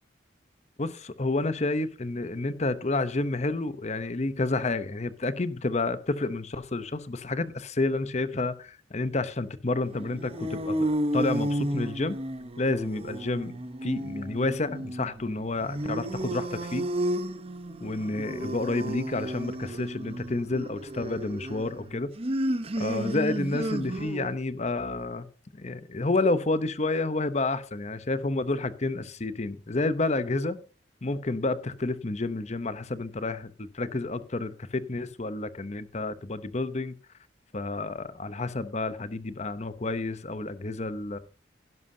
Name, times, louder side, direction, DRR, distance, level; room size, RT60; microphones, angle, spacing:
voice 1, 0.8-12.2 12.6-16.9 17.8-22.1 22.8-25.3 25.5-30.6 31.0-36.9 37.5-41.2, left 2 dB, 35° left, 0.8 m, -30 dB
sound 1, 9.9-24.4, right 1 dB, 30° right, 0.9 m, -32 dB
16.5 x 11.0 x 2.7 m
head